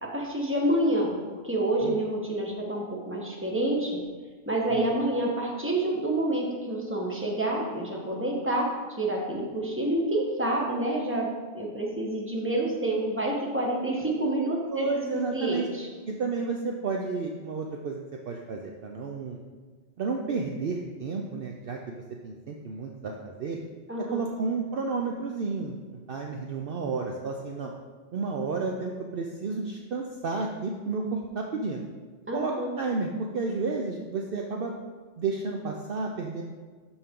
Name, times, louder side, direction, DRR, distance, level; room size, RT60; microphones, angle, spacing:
voice 1, 0.0-4.0 4.5-8.7 9.0-11.3 11.5-15.9 23.9-24.3 32.3-32.7, right 1 dB, 10° right, -2 dB, 1.3 m, -28 dB
voice 2, 14.7-15.7 16.1-18.0 18.3-19.4 20.0-21.9 22.2-23.6 24.1-27.7 28.1-31.8 32.3-33.1 33.3-34.7 35.2-36.4, right 4 dB, 55° right, 1 dB, 0.8 m, -31 dB
12.5 x 4.5 x 3.7 m, 1.4 s
omnidirectional pair, 1.2 m